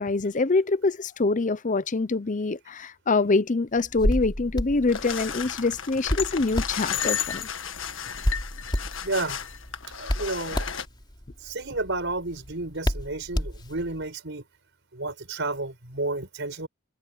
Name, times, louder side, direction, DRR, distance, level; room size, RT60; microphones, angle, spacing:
voice 1, 0.0-7.5, left 3 dB, 40° left, 0.7 m, -25 dB
Hands, 3.8-14.0, equal, 20° left, 3.8 m, -32 dB
sound 1, 4.9-10.9, left 9 dB, 65° left, 1.7 m, -33 dB
voice 2, 9.0-9.4 10.0-10.6 11.4-14.4 14.9-16.7, right 2 dB, 60° right, 5.9 m, -31 dB
head